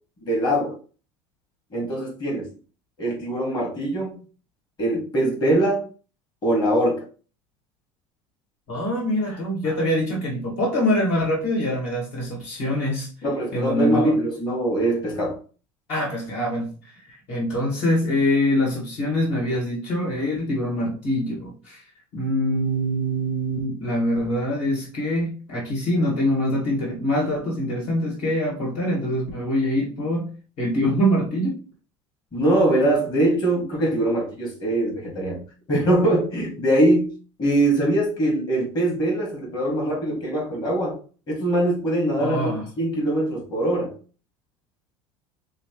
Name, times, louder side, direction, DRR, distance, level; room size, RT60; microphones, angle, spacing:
voice 1, 0.2-0.7 1.7-2.5 3.0-4.2 4.8-5.8 6.4-7.0 13.2-15.4 32.3-35.4 35.7-37.1 37.4-41.0 41.3-43.9, right 1 dB, 35° left, -2 dB, 2.1 m, -22 dB
voice 2, 8.7-13.1 13.5-14.2 15.9-21.8 22.1-30.3 30.6-31.6 42.2-42.6, equal, 60° left, -3 dB, 1.9 m, -24 dB
5.9 x 2.0 x 3.1 m, 0.37 s
supercardioid pair, 105°, 13 cm